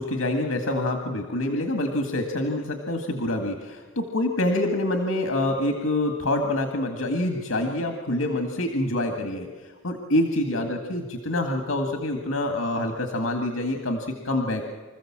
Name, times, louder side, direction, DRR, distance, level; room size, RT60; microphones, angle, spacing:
voice 1, 0.0-9.5 9.8-14.6, left 1 dB, 85° left, 4 dB, 1.9 m, -26 dB
26.0 x 15.0 x 7.4 m, 1.5 s
head